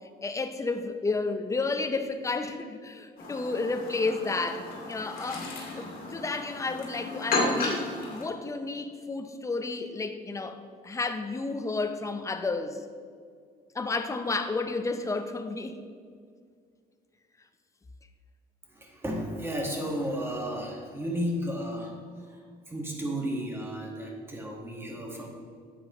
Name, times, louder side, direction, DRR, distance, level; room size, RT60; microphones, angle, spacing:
voice 1, 0.2-5.5 5.8-12.8 13.7-15.8 22.2-22.3, left 3 dB, 20° left, 8 dB, 0.6 m, -32 dB
Chirp tweet, 3.2-8.2, left 2 dB, 60° left, 2.3 m, -33 dB
voice 2, 18.7-21.9 22.7-25.3, equal, 15° right, 0 dB, 1.6 m, -33 dB
10.0 x 7.7 x 3.0 m, 2.1 s
cardioid pair, 110°, 17 cm